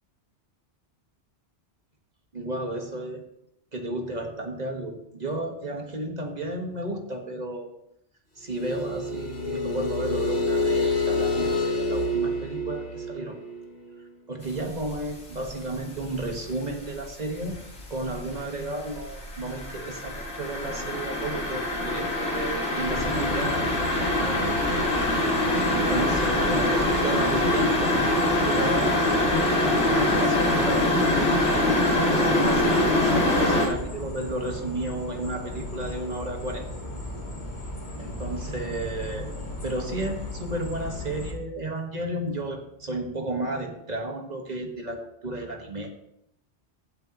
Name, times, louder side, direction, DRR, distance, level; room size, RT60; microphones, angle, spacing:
voice 1, 2.3-3.2 3.7-7.7 8.4-13.4 14.3-17.6 17.9-23.7 24.2-24.6 25.7-31.7 32.0-36.7 38.0-39.3 39.6-45.9, right 1 dB, 40° right, 3 dB, 1.6 m, -33 dB
sound 1, 8.5-14.0, left 2 dB, 60° left, 1.5 m, -27 dB
sound 2, 14.6-15.0 15.4-16.9 17.3-33.7, left 1 dB, 85° left, 2.4 m, -24 dB
sound 3, 23.0-41.3, left 1 dB, 40° left, 1.8 m, -36 dB
15.0 x 7.9 x 3.0 m, 0.75 s
omnidirectional pair, 1.2 m